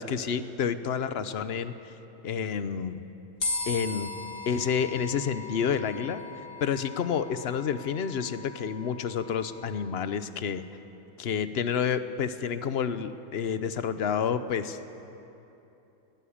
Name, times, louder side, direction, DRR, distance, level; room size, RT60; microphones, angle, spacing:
voice 1, 0.0-1.7 2.2-3.0 3.7-4.1 4.5-6.2 6.6-10.6 11.2-14.9, left 7 dB, 55° left, 12 dB, 1.1 m, -29 dB
sound 1, 3.4-9.8, left 3 dB, 80° left, 2.9 m, -38 dB
21.5 x 18.0 x 8.7 m, 3.0 s
omnidirectional pair, 1.3 m